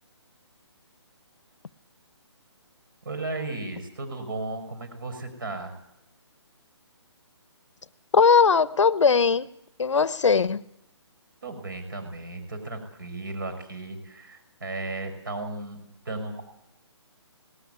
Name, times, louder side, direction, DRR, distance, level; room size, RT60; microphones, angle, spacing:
voice 1, 3.0-5.8 11.4-15.8 16.0-16.4, right 2 dB, 45° right, 8 dB, 6.0 m, -35 dB
voice 2, 8.1-9.5 9.8-10.6, left 5 dB, 80° left, 16 dB, 1.0 m, -19 dB
19.0 x 18.0 x 9.5 m, 0.80 s
hypercardioid pair, 180°, 15 cm